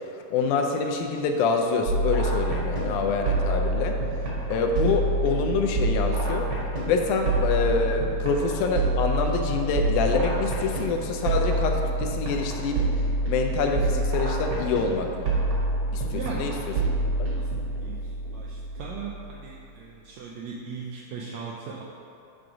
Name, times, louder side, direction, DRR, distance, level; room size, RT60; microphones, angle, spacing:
voice 1, 0.3-4.0 4.5-6.5 6.9-12.9 13.3-15.3 15.9-16.8 17.2-17.3, left 4 dB, 80° left, 3 dB, 1.9 m, -26 dB
sound 1, 1.9-19.5, right 2 dB, 55° right, 1.6 m, -27 dB
voice 2, 16.1-16.5 17.8-18.0 18.3-21.8, right 5 dB, 85° right, -3 dB, 1.6 m, -38 dB
7.8 x 3.6 x 5.0 m, 2.7 s
omnidirectional pair, 3.7 m